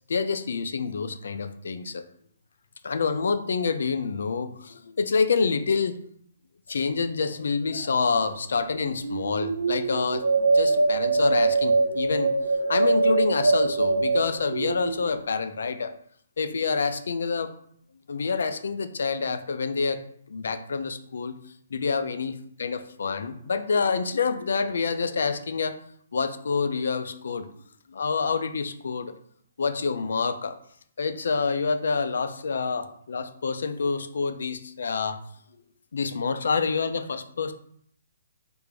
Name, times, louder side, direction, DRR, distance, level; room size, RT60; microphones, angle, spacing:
voice 1, 0.1-2.0 2.8-6.0 6.7-12.3 12.6-15.9 16.4-17.5 18.1-20.0 20.3-21.4 21.7-25.8 26.1-27.5 27.9-29.1 29.6-30.6 31.0-35.2 35.9-37.5, left 5 dB, 65° left, 10 dB, 0.3 m, -27 dB
sound 1, 8.8-15.3, right 3 dB, 90° right, 0.4 m, -23 dB
3.4 x 2.5 x 3.2 m, 0.64 s
hypercardioid pair, 175°, 0 cm